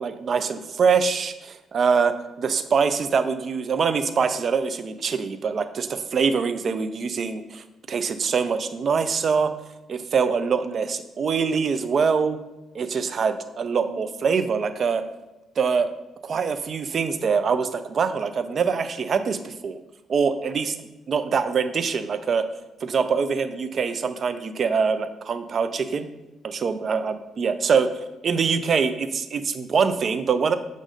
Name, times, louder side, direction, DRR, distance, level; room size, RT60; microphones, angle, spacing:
voice 1, 0.0-9.5 9.9-12.4 12.7-15.0 15.6-15.9 16.2-19.8 20.1-20.7 21.1-22.5 22.8-26.1 26.4-27.9 28.2-30.5, right 5 dB, 50° right, 10 dB, 0.4 m, -24 dB
7.4 x 2.6 x 5.0 m, 1.0 s
cardioid pair, 90°, 0 cm